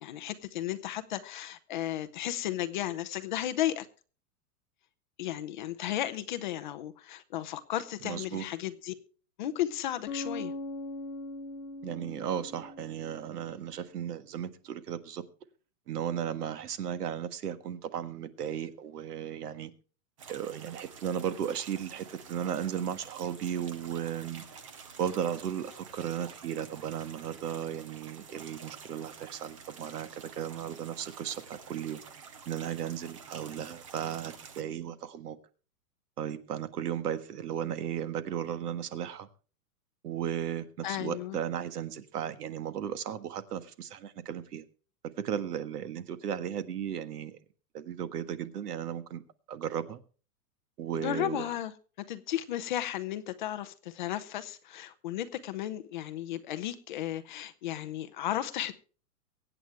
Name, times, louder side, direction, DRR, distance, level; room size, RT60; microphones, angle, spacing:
voice 1, 0.0-3.9 5.2-8.9 9.4-10.5 40.8-41.4 51.0-51.7 52.1-58.7, left 12 dB, 30° left, 0.8 m, -34 dB
voice 2, 8.0-8.4 11.8-15.2 15.9-19.7 20.3-24.4 25.0-32.0 32.5-35.4 36.2-39.3 40.0-44.6 45.2-47.4 47.7-49.2 49.5-50.0 50.8-51.5, right 9 dB, 80° right, 1.7 m, -35 dB
Bass guitar, 10.1-13.7, left 2 dB, 60° left, 1.8 m, -40 dB
sound 1, 20.2-34.6, right 6 dB, 20° right, 0.5 m, -49 dB
23.5 x 8.9 x 3.3 m
supercardioid pair, 180°, 47 cm